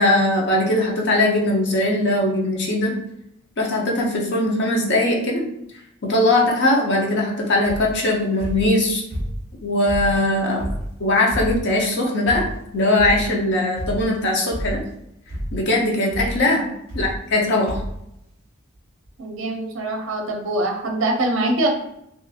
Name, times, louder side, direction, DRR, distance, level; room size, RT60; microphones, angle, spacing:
voice 1, 0.0-3.0 3.6-5.4 6.0-9.0 9.6-12.4 12.7-14.8 15.5-16.6 16.9-17.8, left 1 dB, 55° left, -1 dB, 0.6 m, -20 dB
sound 1, 7.6-8.0 8.4-9.5 9.9-11.8 12.3-12.7 13.0-13.4 13.8-14.2 14.5-15.0 15.3-15.7 16.1-16.4 16.9-17.4 17.7-18.0 18.7-18.8 19.0-19.1, equal, 90° left, 1.3 m, -30 dB
voice 2, 19.2-21.7, right 2 dB, 65° right, 2 dB, 0.5 m, -23 dB
2.6 x 2.3 x 2.6 m, 0.80 s
head